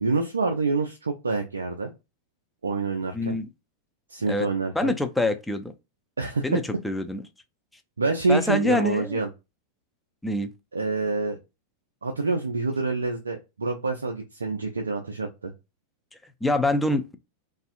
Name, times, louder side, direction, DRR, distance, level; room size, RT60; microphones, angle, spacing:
voice 1, 0.0-1.9 2.6-3.4 4.1-5.0 6.2-6.6 8.0-9.3 10.7-11.4 12.0-15.5, right 3 dB, 75° right, 0.4 m, -27 dB
voice 2, 3.1-3.5 4.3-4.5 4.7-5.7 6.4-7.2 8.3-9.2 10.2-10.5 16.4-17.1, left 1 dB, 5° left, 0.4 m, -25 dB
2.5 x 2.4 x 2.4 m
figure-of-eight pair, 90°, 0 cm